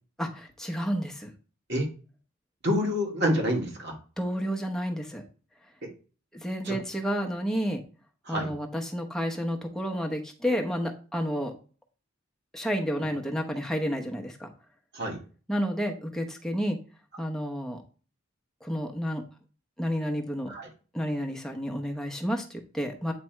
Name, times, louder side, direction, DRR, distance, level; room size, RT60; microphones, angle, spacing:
voice 1, 0.2-1.3 4.2-5.2 6.3-7.8 8.3-11.5 12.5-14.5 15.5-16.8 17.2-17.8 18.6-19.2 19.8-20.5 20.9-23.1, equal, ahead, 1 dB, 1.0 m, -30 dB
voice 2, 2.6-4.0 5.8-5.9 6.7-6.8 8.3-8.5 14.9-15.2 20.5-20.7, equal, 55° right, 1 dB, 2.0 m, -27 dB
8.6 x 3.4 x 4.5 m, 0.37 s
head